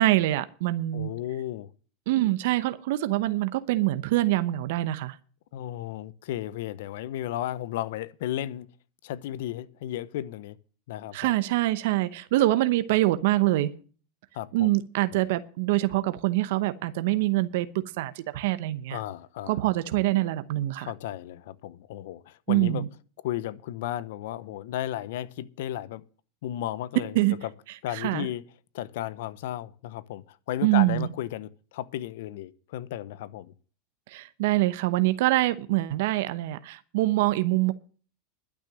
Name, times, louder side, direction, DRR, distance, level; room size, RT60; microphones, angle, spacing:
voice 1, 0.0-1.1 2.1-5.2 11.1-13.7 14.5-19.0 19.5-20.9 22.5-22.9 27.1-27.3 27.9-28.3 30.6-31.1 34.1-37.7, right 16 dB, 70° right, 0.9 m, -25 dB
voice 2, 0.9-1.7 5.5-8.7 9.0-10.6 10.9-11.3 12.5-12.6 14.3-14.7 15.1-15.3 18.9-19.6 20.8-22.8 23.2-26.1 26.4-27.5 27.8-28.4 28.7-33.5, left 13 dB, 75° left, 0.8 m, -34 dB
12.0 x 6.4 x 8.9 m
hypercardioid pair, 105°, 0 cm